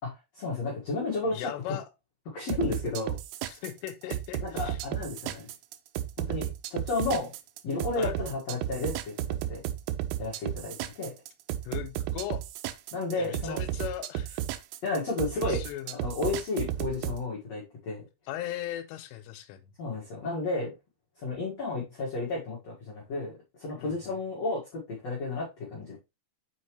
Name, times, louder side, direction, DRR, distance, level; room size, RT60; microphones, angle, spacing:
voice 1, 0.0-1.8 2.3-3.2 4.4-5.5 6.2-7.3 7.6-9.1 9.5-9.6 10.2-11.1 12.9-13.6 14.8-15.6 15.9-18.0 19.8-20.7 21.2-23.3 23.6-26.0, left 3 dB, 60° left, 1.7 m, -32 dB
voice 2, 1.3-1.9 3.5-4.8 8.0-8.2 11.6-12.4 13.2-14.4 15.3-16.0 18.3-19.6 23.8-23.9, left 12 dB, 90° left, 3.3 m, -38 dB
sound 1, 2.5-17.2, right 12 dB, 80° right, 3.0 m, -33 dB
7.2 x 5.4 x 3.1 m
omnidirectional pair, 5.8 m